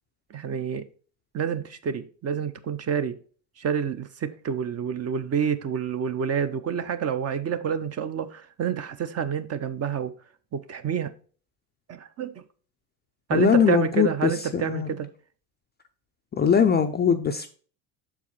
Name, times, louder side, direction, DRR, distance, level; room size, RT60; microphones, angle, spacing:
voice 1, 0.3-0.8 1.3-3.1 3.6-10.1 10.5-11.1 11.9-12.4 13.3-15.1, right 7 dB, 30° right, 0.6 m, -28 dB
voice 2, 13.3-14.9 16.3-17.5, left 7 dB, 20° left, 0.4 m, -21 dB
6.4 x 4.8 x 4.2 m
hypercardioid pair, 85°, 50 cm